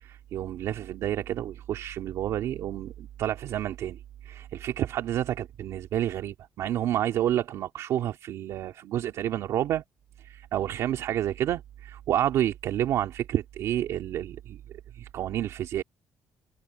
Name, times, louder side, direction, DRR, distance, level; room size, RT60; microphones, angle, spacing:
voice 1, 0.0-9.8 10.2-14.6 14.9-15.8, right 11 dB, 60° right, 2.5 m, -29 dB
cardioid pair, 165°, 6 cm